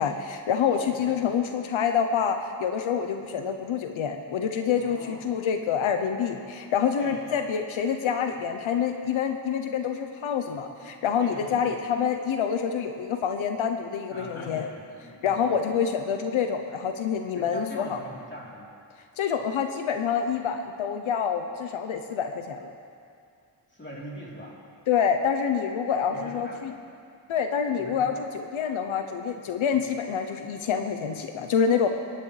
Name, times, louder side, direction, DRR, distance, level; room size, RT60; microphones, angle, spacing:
voice 1, 0.0-14.7 15.2-18.0 19.2-22.7 24.9-26.7 27.3-31.9, left 7 dB, 90° left, 6 dB, 0.8 m, -27 dB
voice 2, 0.7-1.2 4.8-5.2 7.0-7.4 10.5-10.6 10.8-11.9 14.1-15.8 17.3-18.7 23.7-24.6 25.9-26.8 27.8-28.2, equal, 25° left, -5 dB, 3.4 m, -43 dB
24.0 x 10.5 x 3.3 m, 2.4 s
wide cardioid pair, 100°, 46 cm